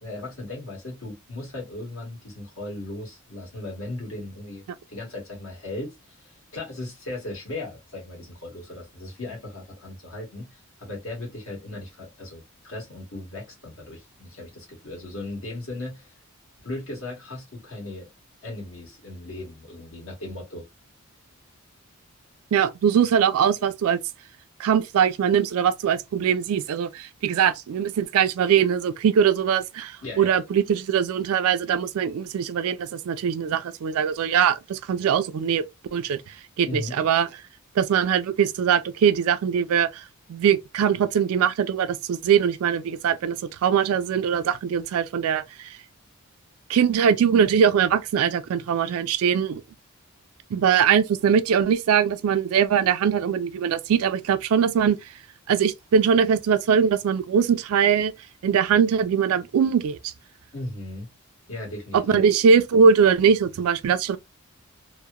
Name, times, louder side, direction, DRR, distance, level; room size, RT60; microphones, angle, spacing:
voice 1, 0.0-4.6 4.9-16.1 16.6-18.1 18.4-20.6 30.0-30.3 36.6-37.0 60.5-61.1 61.5-62.2, left 2 dB, 70° left, 1.4 m, -37 dB
voice 2, 22.5-24.0 24.6-35.6 35.9-37.3 37.8-40.0 40.3-43.4 43.6-45.8 46.7-49.6 50.5-55.1 55.5-58.1 58.4-60.1 61.9-64.2, right 7 dB, 75° right, 0.3 m, -21 dB
2.8 x 2.1 x 2.2 m
head